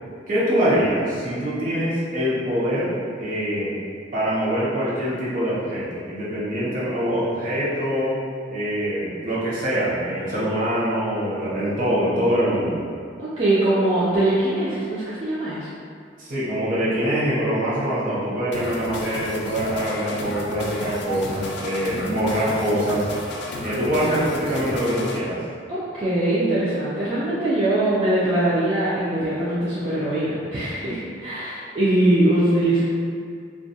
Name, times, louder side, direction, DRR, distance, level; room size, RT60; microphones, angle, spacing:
voice 1, 0.3-2.9 3.2-3.7 4.1-8.2 8.5-12.8 16.2-23.1 23.6-25.5, equal, 50° right, -9 dB, 0.7 m, -24 dB
voice 2, 13.2-15.7 24.0-24.1 25.7-32.8, right 1 dB, 30° right, -11 dB, 0.4 m, -22 dB
sound 1, 18.5-25.2, left 1 dB, 70° left, 0.3 m, -33 dB
2.2 x 2.2 x 2.6 m, 2.2 s
head